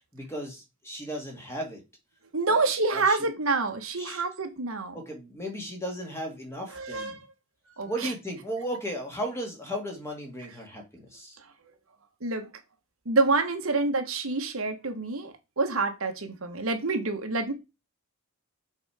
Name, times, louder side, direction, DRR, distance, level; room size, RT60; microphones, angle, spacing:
voice 1, 0.0-1.8 2.5-3.2 4.0-4.2 4.9-7.2 7.9-11.4, equal, 10° left, 2.0 m, -36 dB
voice 2, 2.3-5.0 6.7-7.2 7.8-8.1 12.2-12.5 13.0-17.5, right 3 dB, 70° right, 1.3 m, -27 dB
6.7 x 4.2 x 4.9 m
head